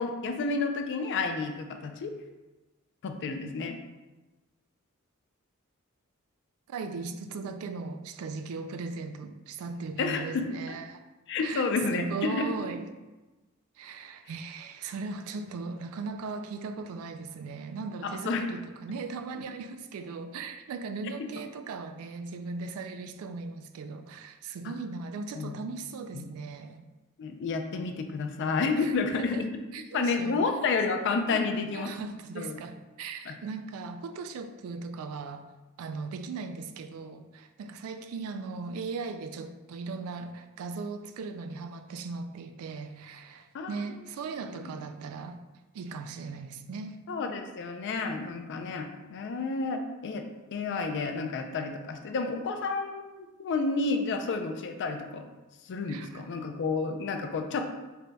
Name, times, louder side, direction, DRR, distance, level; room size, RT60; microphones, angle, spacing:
voice 1, 0.0-2.1 3.0-3.7 10.0-10.4 11.3-12.5 18.0-18.5 19.3-19.4 25.3-25.6 26.1-26.3 27.2-29.5 29.9-31.9 32.4-32.6 33.3-33.4 43.5-43.7 44.6-44.7 47.1-50.2 50.5-55.3 55.6-57.6, left 4 dB, 55° left, 6 dB, 0.4 m, -30 dB
voice 2, 6.7-11.0 11.4-12.9 13.8-26.8 28.8-29.0 29.3-29.5 29.7-30.4 31.3-31.4 31.7-35.5 35.8-45.4 45.7-47.1 55.9-56.2, right 4 dB, 70° right, 10 dB, 0.3 m, -38 dB
3.4 x 2.2 x 3.9 m, 1.1 s
head